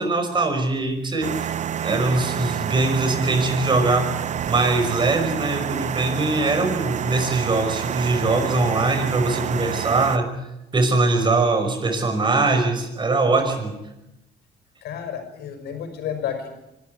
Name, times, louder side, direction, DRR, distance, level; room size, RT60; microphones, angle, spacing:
voice 1, 0.0-1.5 1.8-4.1 4.5-10.3 10.7-13.8, right 3 dB, 25° right, 6 dB, 5.5 m, -22 dB
sound 1, 1.2-10.2, right 9 dB, 45° right, 0.9 m, -28 dB
voice 2, 14.8-16.5, left 8 dB, 75° left, 6 dB, 5.5 m, -31 dB
24.5 x 13.5 x 9.5 m, 0.93 s
cardioid pair, 110°, 17 cm